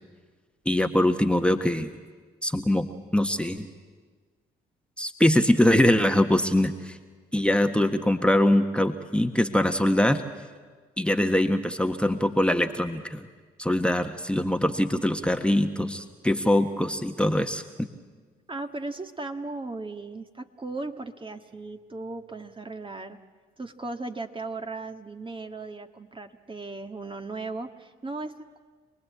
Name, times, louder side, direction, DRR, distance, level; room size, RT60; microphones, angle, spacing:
voice 1, 0.6-1.9 2.4-3.7 5.0-7.0 7.3-10.2 11.0-13.3 13.6-17.9, left 1 dB, 5° left, 6 dB, 1.5 m, -23 dB
voice 2, 18.5-23.2 23.6-28.6, right 3 dB, 25° right, 5 dB, 1.8 m, -37 dB
27.5 x 20.0 x 8.6 m, 1.5 s
hypercardioid pair, 50°, 21 cm